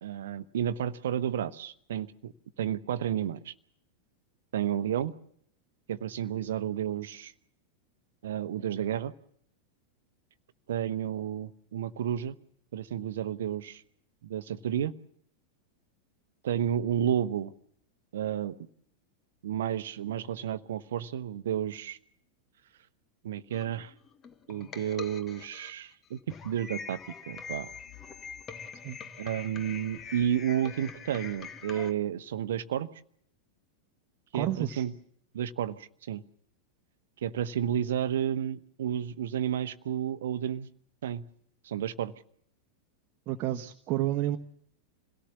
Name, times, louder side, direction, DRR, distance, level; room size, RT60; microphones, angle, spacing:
voice 1, 0.0-2.3 2.6-3.5 4.5-5.1 5.9-7.3 8.2-9.1 10.7-12.3 12.7-13.8 14.2-14.9 16.4-17.5 18.1-18.5 19.4-22.0 23.2-23.9 24.5-26.2 26.4-27.0 27.3-27.7 29.2-32.9 34.3-34.9 35.3-36.2 37.2-40.7 41.0-41.2 41.6-42.1, right 10 dB, 60° right, 14 dB, 1.1 m, -31 dB
sound 1, 23.5-31.9, left 6 dB, 25° left, 1.6 m, -44 dB
voice 2, 34.3-34.8 43.3-44.4, right 14 dB, 40° right, 4 dB, 1.3 m, -30 dB
27.0 x 17.5 x 7.2 m, 0.67 s
figure-of-eight pair, 90°, 0 cm